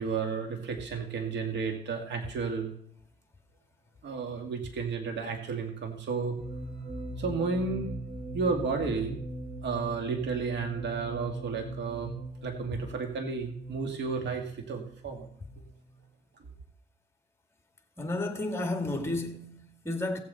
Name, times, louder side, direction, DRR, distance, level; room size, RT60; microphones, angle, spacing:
voice 1, 0.0-2.7 4.0-6.4 7.2-7.9 8.3-9.2 9.6-12.2 12.4-15.3, right 5 dB, 65° right, 2.0 m, -32 dB
sound 1, 6.4-16.0, right 1 dB, 25° right, 1.7 m, -41 dB
voice 2, 18.0-20.2, left 2 dB, 15° left, 2.0 m, -32 dB
16.5 x 7.6 x 4.1 m
cardioid pair, 90°, 20 cm